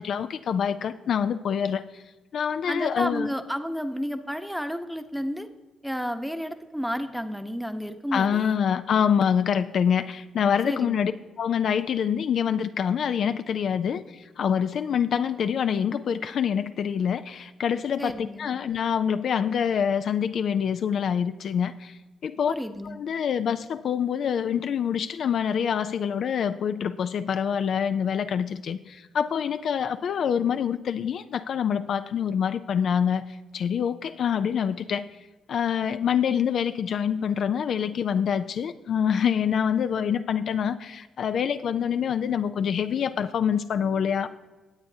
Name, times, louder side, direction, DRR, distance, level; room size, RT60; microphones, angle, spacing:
voice 1, 0.0-2.0 2.3-3.3 8.1-11.1 11.4-22.5 22.8-35.1 35.5-44.3, left 8 dB, 65° left, 10 dB, 0.4 m, -26 dB
voice 2, 2.7-5.5 5.8-8.6 10.6-11.0 18.0-18.5 22.5-23.0, equal, ahead, 8 dB, 0.9 m, -31 dB
18.5 x 7.9 x 2.8 m, 1.2 s
supercardioid pair, 65°, 0 cm